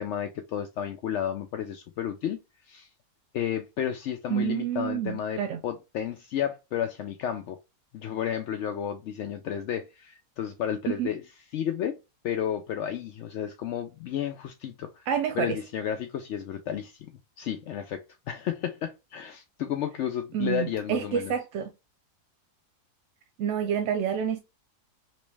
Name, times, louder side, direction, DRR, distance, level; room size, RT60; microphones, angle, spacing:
voice 1, 0.0-2.9 3.3-7.6 7.9-11.2 11.5-12.0 12.2-15.1 15.4-17.1 17.4-21.3, left 9 dB, 70° left, 0.7 m, -32 dB
voice 2, 4.3-5.6 10.9-11.1 15.1-15.6 20.3-21.7 23.4-24.4, right 8 dB, 70° right, 0.7 m, -28 dB
3.1 x 3.0 x 3.2 m
omnidirectional pair, 1.7 m